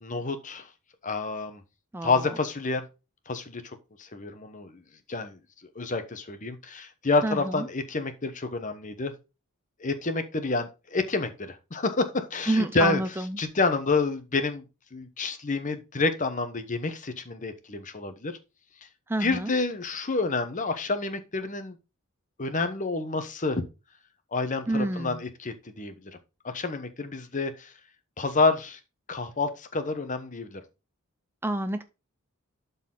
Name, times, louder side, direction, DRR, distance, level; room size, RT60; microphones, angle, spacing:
voice 1, 0.0-0.7 1.0-1.6 2.0-2.8 3.3-4.8 5.1-5.4 5.7-9.1 9.8-13.0 13.4-14.6 14.9-18.4 18.8-18.9 19.2-21.8 22.4-23.6 24.3-26.1 26.4-27.7 28.2-28.8 29.1-30.6, left 3 dB, 35° left, 9 dB, 1.0 m, -28 dB
voice 2, 1.9-2.3 7.2-7.6 12.5-13.4 19.1-19.5 24.7-25.2 31.4-31.8, right 1 dB, 10° right, 9 dB, 0.4 m, -28 dB
11.5 x 4.1 x 3.8 m, 0.29 s
head